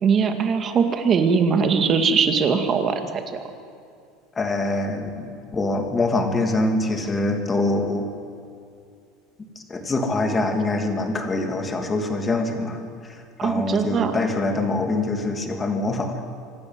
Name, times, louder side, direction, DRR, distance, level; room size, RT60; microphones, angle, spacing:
voice 1, 0.0-3.4 13.4-14.1, right 6 dB, 35° right, 6 dB, 2.1 m, -21 dB
voice 2, 4.4-8.1 9.7-12.8 13.4-16.2, left 2 dB, 20° left, 4 dB, 2.7 m, -24 dB
25.5 x 12.0 x 9.6 m, 2.3 s
supercardioid pair, 130°, 0 cm